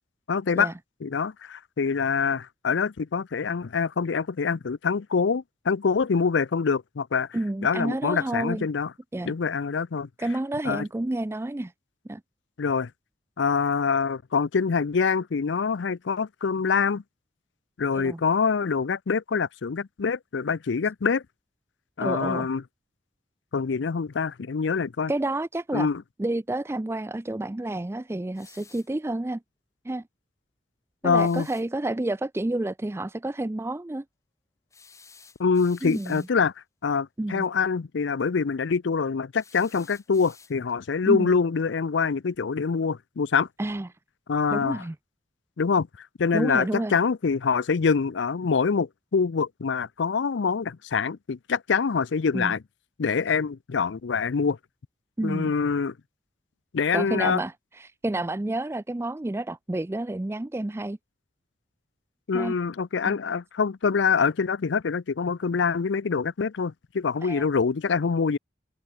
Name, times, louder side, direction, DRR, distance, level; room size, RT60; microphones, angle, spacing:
voice 1, 0.3-0.7 1.0-7.3 7.6-8.9 9.2-10.1 10.6-10.9 12.6-12.9 13.4-17.0 17.8-21.2 22.0-22.6 23.5-25.1 25.7-26.0 31.0-31.5 35.4-36.5 36.8-43.5 44.3-44.8 45.6-52.6 53.0-54.6 55.2-55.9 56.7-57.4 62.3-68.4, left 5 dB, 70° left, 0.5 m, -25 dB
voice 2, 7.3-8.7 9.1-9.3 10.2-11.7 12.1-12.2 17.9-18.2 22.0-22.5 25.1-25.9 26.2-29.4 29.8-30.0 31.0-34.0 35.8-36.3 37.2-37.5 41.1-41.4 43.6-43.9 44.5-44.9 46.3-47.0 52.3-52.5 55.2-55.5 56.9-61.0 62.3-62.5 63.0-63.2 67.2-67.5, right 1 dB, 15° right, 0.4 m, -30 dB
sound 1, 28.3-29.0 31.1-31.7 34.7-36.4 39.4-40.8, left 5 dB, 15° left, 4.4 m, -53 dB
open air
head